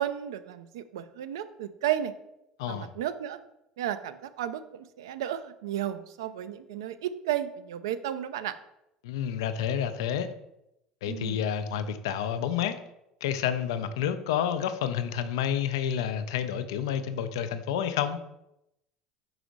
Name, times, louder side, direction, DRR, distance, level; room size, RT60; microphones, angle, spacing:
voice 1, 0.0-2.1 2.7-3.4 3.8-8.5 11.1-11.4, right 11 dB, 75° right, 12 dB, 0.4 m, -33 dB
voice 2, 2.6-2.9 9.0-10.3 11.0-12.8 13.2-18.2, left 9 dB, 75° left, 11 dB, 0.5 m, -29 dB
5.0 x 4.9 x 3.9 m, 0.85 s
hypercardioid pair, 70°, 3 cm